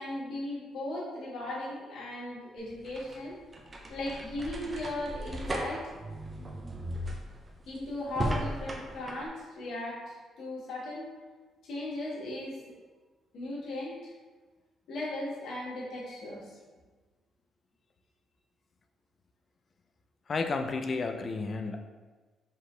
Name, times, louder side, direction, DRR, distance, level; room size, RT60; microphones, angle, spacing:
voice 1, 0.0-3.4 3.9-5.9 7.7-12.7 13.3-14.1 14.9-16.4, left 1 dB, 75° left, -6 dB, 1.4 m, -37 dB
sound 1, 2.6-9.3, right 1 dB, 30° right, 0.6 m, -37 dB
voice 2, 20.3-21.8, left 4 dB, 40° left, 5 dB, 0.4 m, -32 dB
4.6 x 2.9 x 3.3 m, 1.3 s
cardioid pair, 90°, 0 cm